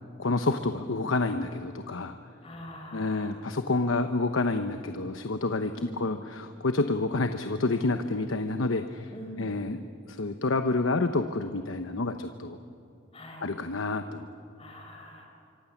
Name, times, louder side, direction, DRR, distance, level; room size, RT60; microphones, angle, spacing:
voice 1, 0.2-2.2 2.9-9.1 9.4-12.6 13.4-14.3, left 3 dB, 90° left, 8 dB, 1.0 m, -29 dB
voice 2, 2.4-3.3 5.7-6.1 9.1-9.5 13.1-13.5 14.6-15.3, left 1 dB, 30° left, 2 dB, 4.5 m, -44 dB
26.0 x 25.0 x 7.3 m, 2.7 s
head